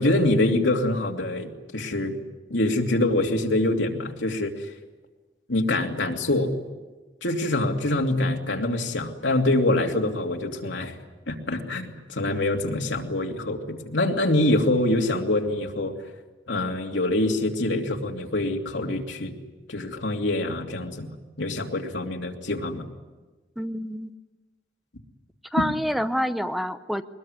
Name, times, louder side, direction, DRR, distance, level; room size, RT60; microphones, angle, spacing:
voice 1, 0.0-2.2 2.5-4.7 5.5-6.5 7.2-11.0 11.3-15.9 16.5-19.3 19.7-21.1 21.4-22.8, left 1 dB, 85° left, 2 dB, 2.7 m, -25 dB
voice 2, 23.6-24.1 25.5-27.0, equal, ahead, 10 dB, 0.7 m, -27 dB
22.5 x 21.0 x 9.8 m, 1.2 s
head